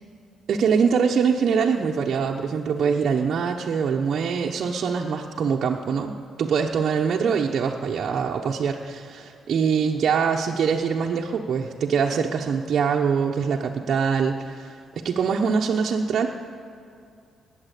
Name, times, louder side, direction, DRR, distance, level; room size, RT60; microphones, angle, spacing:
voice 1, 0.5-6.1 6.4-16.3, right 6 dB, 60° right, -1 dB, 0.9 m, -23 dB
20.5 x 7.6 x 8.3 m, 2.4 s
cardioid pair, 90°, 0 cm